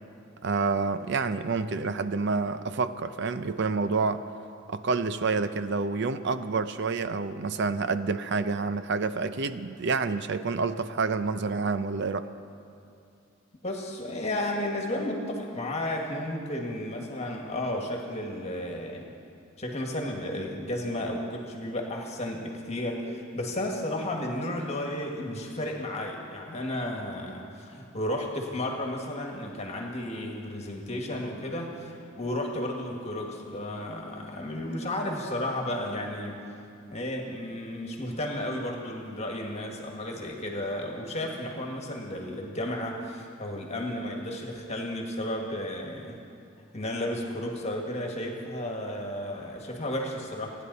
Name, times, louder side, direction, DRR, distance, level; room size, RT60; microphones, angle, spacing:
voice 1, 0.4-4.2 4.7-12.3, right 4 dB, 60° right, 11 dB, 0.6 m, -28 dB
voice 2, 13.6-19.1 19.6-36.4 36.9-46.2 46.7-50.6, left 1 dB, 35° left, 0 dB, 1.8 m, -33 dB
30.0 x 10.0 x 4.1 m, 2.6 s
head